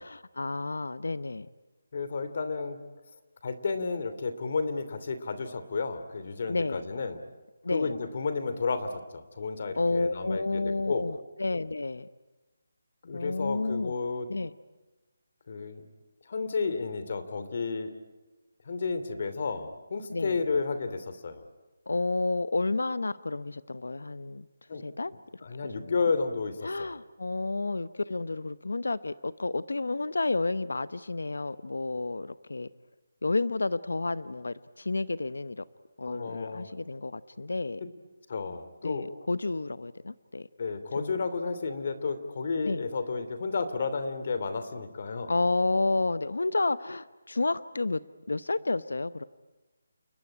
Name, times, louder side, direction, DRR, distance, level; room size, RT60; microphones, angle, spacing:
voice 1, 0.0-1.5 6.5-6.8 7.6-7.9 9.8-12.1 13.1-13.9 14.3-14.5 20.1-20.4 21.9-24.5 24.8-25.1 25.6-25.9 26.6-32.7 33.2-35.7 36.0-37.8 38.8-40.5 41.0-41.2 42.7-42.8 45.3-48.0 48.3-49.2, left 3 dB, 85° left, 15 dB, 0.9 m, -30 dB
voice 2, 1.9-2.8 3.4-7.2 7.7-11.1 13.0-14.3 15.5-15.8 16.3-17.9 18.6-21.4 24.7-24.8 25.4-26.9 36.1-36.7 37.8-37.9 38.3-39.1 40.6-45.3, left 4 dB, 50° left, 10 dB, 2.9 m, -32 dB
29.5 x 19.5 x 9.9 m, 1.1 s
figure-of-eight pair, 165°, 0 cm